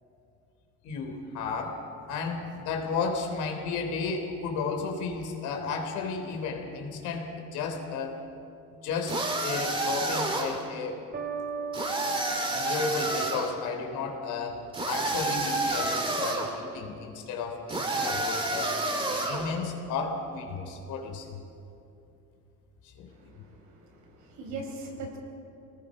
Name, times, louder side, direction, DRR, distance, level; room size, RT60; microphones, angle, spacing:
voice 1, 0.8-1.8 2.1-8.2 8.8-11.1 12.5-18.8 19.1-21.4 23.0-23.1, left 4 dB, 65° left, 3 dB, 3.5 m, -33 dB
sound 1, 9.1-10.6 11.7-13.5 14.7-16.5 17.7-19.5, right 2 dB, 15° right, 2.2 m, -29 dB
sound 2, 11.1-14.0, right 4 dB, 35° right, 2.4 m, -38 dB
voice 2, 23.1-25.2, right 3 dB, 70° right, 1 dB, 5.1 m, -41 dB
27.0 x 19.5 x 5.4 m, 2.7 s
cardioid pair, 160°, 31 cm